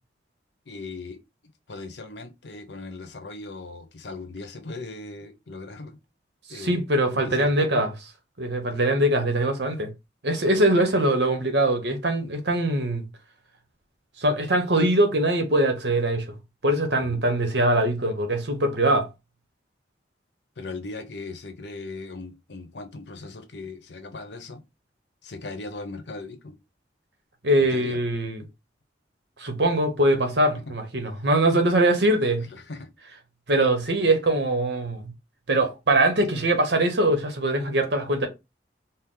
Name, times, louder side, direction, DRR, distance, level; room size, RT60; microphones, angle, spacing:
voice 1, 0.7-1.2 1.7-6.0 6.5-6.8 7.1-7.9 17.0-17.2 20.6-24.6 25.2-26.6 27.6-28.0 30.5-30.6 32.5-32.9, left 3 dB, 75° left, 0.9 m, -38 dB
voice 2, 6.5-7.9 8.4-9.9 10.2-13.0 14.2-16.3 16.6-19.1 27.4-28.4 29.4-32.5 33.5-35.1 35.5-38.3, right 1 dB, 70° right, 1.0 m, -22 dB
4.4 x 2.0 x 3.8 m
head